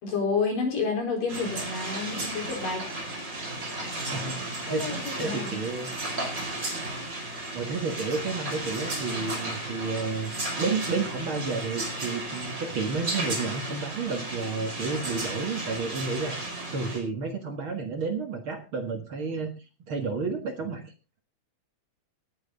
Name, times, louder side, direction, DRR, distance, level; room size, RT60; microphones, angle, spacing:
voice 1, 0.0-2.8 4.7-5.6, left 4 dB, 85° left, 2 dB, 6.2 m, -29 dB
sound 1, 1.3-17.0, right 2 dB, 25° right, 5.0 m, -34 dB
voice 2, 4.0-4.9 5.2-5.9 7.5-10.3 10.6-16.4 16.7-19.5 19.9-20.8, right 4 dB, 45° right, 5 dB, 2.1 m, -31 dB
18.5 x 9.1 x 4.0 m, 0.30 s
omnidirectional pair, 3.7 m